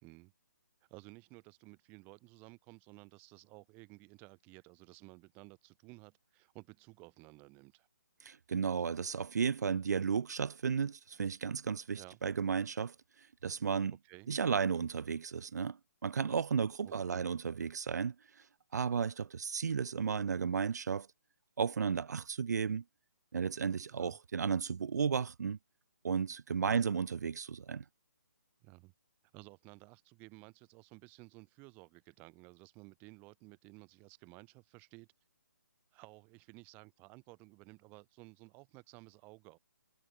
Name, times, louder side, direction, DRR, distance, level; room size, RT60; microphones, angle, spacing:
voice 1, 0.0-0.3 0.9-7.9 12.0-12.2 14.0-14.3 16.8-17.2 23.9-24.2 26.7-26.8 28.6-28.9 29.3-35.1 35.9-39.6, right 27 dB, 15° right, 1.1 m, -55 dB
voice 2, 8.2-12.9 13.4-13.9 14.3-18.1 18.7-21.1 21.6-22.8 23.3-25.6 26.0-27.8, right 6 dB, 65° right, 0.6 m, -33 dB
hypercardioid pair, 160°, 10 cm